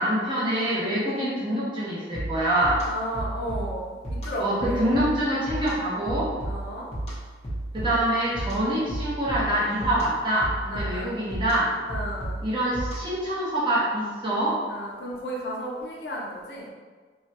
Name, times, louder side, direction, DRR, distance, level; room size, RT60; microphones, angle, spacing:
voice 1, 0.0-2.8 4.4-6.3 7.7-11.7 12.4-14.6, right 1 dB, 25° right, -8 dB, 0.8 m, -25 dB
sound 1, 2.1-13.3, right 1 dB, 35° left, 0.8 m, -34 dB
voice 2, 2.9-5.1 6.4-6.9 10.7-11.1 11.9-12.4 14.7-16.7, equal, 60° left, -3 dB, 0.5 m, -34 dB
3.2 x 2.2 x 2.8 m, 1.5 s
head